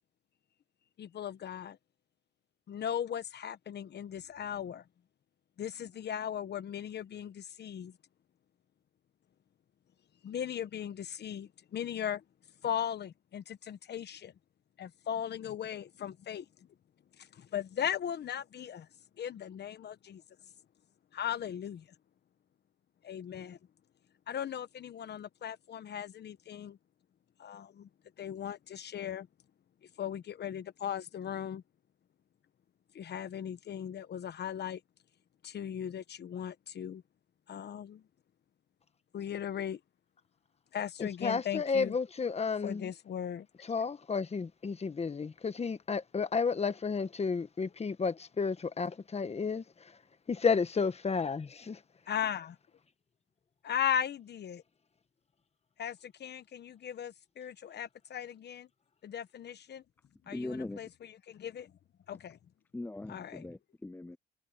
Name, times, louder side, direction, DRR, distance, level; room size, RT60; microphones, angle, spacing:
voice 1, 1.0-1.8 2.7-4.8 5.6-7.9 10.2-12.2 12.6-14.3 14.8-16.4 17.2-18.9 19.2-20.2 21.1-21.9 23.0-23.6 24.3-26.8 27.4-27.9 28.2-29.3 30.0-31.6 32.9-34.8 35.4-37.0 37.5-38.0 39.1-39.8 40.7-41.9 42.6-43.7 52.1-52.6 53.6-54.6 55.8-58.7 59.0-59.8 60.3-61.7 62.1-62.4 63.1-63.5, left 9 dB, 55° left, 1.2 m, -38 dB
voice 2, 41.0-42.9 43.7-50.0 50.3-51.8, left 5 dB, 30° left, 1.4 m, -32 dB
voice 3, 60.3-60.8 62.7-64.2, left 2 dB, 10° left, 0.4 m, -40 dB
cardioid pair, 90°, 20 cm